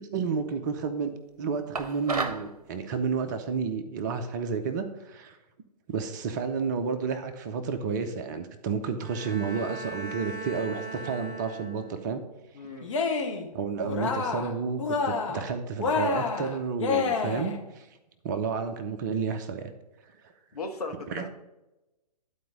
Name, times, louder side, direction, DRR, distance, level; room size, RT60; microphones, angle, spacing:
voice 1, 0.1-1.1 1.4-5.4 5.9-12.2 13.5-17.9 18.2-19.7 21.1-21.3, right 5 dB, 25° right, 8 dB, 0.6 m, -31 dB
sound 1, 1.7-2.5, right 4 dB, 60° right, 0.9 m, -31 dB
Bowed string instrument, 9.0-12.2, right 2 dB, 10° right, 2.2 m, -39 dB
voice 2, 12.5-13.0 20.5-21.3, left 3 dB, 65° left, 3 dB, 1.4 m, -37 dB
Cheering, 12.8-13.5 13.8-14.5 14.8-15.5 15.8-17.6, left 4 dB, 50° left, 1.5 m, -28 dB
11.0 x 4.4 x 5.1 m, 0.99 s
figure-of-eight pair, 125°, 21 cm